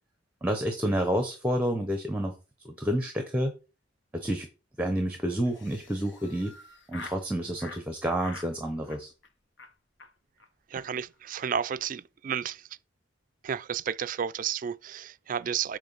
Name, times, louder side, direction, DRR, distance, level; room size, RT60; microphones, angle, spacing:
voice 1, 0.4-2.3 2.6-3.5 4.1-4.5 4.8-6.5 6.9-9.1, equal, 5° right, 0.9 m, -29 dB
Laughter, 5.4-7.2 7.6-7.8 8.2-8.5 8.8-9.3 9.6-9.7 10.0-10.1 10.4-10.5 10.7-10.9 11.1-11.5, left 3 dB, 70° left, 1.0 m, -46 dB
voice 2, 10.7-12.6 13.4-15.8, right 8 dB, 45° right, 0.3 m, -32 dB
8.5 x 3.2 x 5.5 m
head